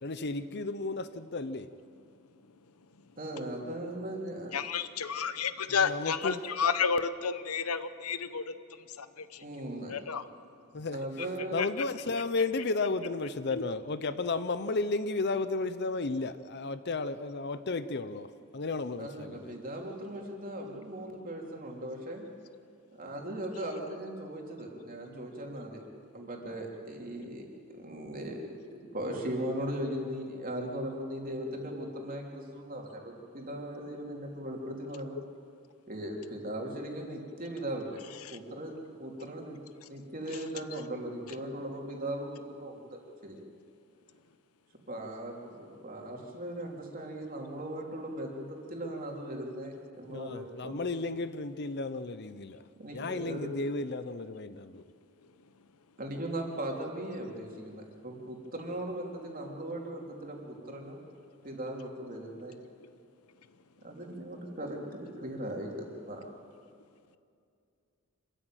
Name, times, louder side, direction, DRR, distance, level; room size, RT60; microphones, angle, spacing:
voice 1, 0.0-1.7 5.9-6.4 10.7-11.0 11.5-18.3 18.5-19.5 50.1-52.6 52.9-54.8, left 3 dB, 50° left, 12 dB, 0.7 m, -33 dB
voice 2, 3.2-4.5 9.4-9.9 10.9-11.6 19.0-22.2 23.0-25.8 26.1-35.1 35.9-38.0 38.3-39.6 39.9-43.4 44.9-50.8 52.8-53.5 56.0-61.0 61.4-62.5 63.8-66.3, right 1 dB, 40° right, 0 dB, 3.3 m, -38 dB
voice 3, 4.5-8.4 9.0-9.4 9.9-10.3 11.6-11.7 13.5-13.6 30.6-30.7 38.2-38.4 40.3-40.4 62.8-62.9, left 6 dB, 80° left, 12 dB, 0.9 m, -31 dB
26.0 x 13.5 x 9.2 m, 2.4 s
head